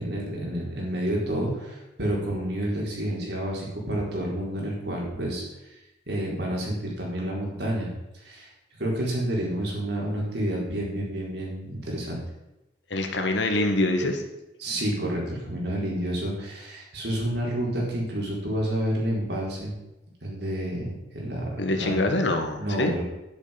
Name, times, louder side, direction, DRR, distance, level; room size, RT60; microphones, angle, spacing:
voice 1, 0.0-5.4 6.1-7.9 8.2-8.5 8.8-12.2 14.6-19.7 20.2-20.9 21.1-21.5 21.8-22.0 22.6-23.0, right 1 dB, 65° right, -3 dB, 4.5 m, -29 dB
voice 2, 12.9-14.2 21.6-22.9, left 2 dB, 75° left, 5 dB, 1.8 m, -25 dB
10.5 x 10.5 x 5.3 m, 0.96 s
head